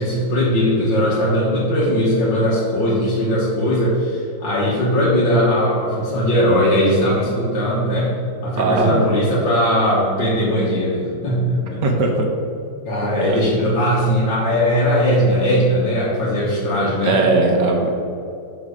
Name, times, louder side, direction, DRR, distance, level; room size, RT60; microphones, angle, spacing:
voice 1, 0.0-8.1 8.4-11.8 12.9-17.2, equal, 65° left, -7 dB, 1.9 m, -19 dB
voice 2, 8.6-9.0 11.8-12.3 13.2-13.4 17.0-18.0, right 2 dB, 65° right, 2 dB, 1.4 m, -18 dB
6.5 x 6.4 x 5.0 m, 2.6 s
omnidirectional pair, 2.2 m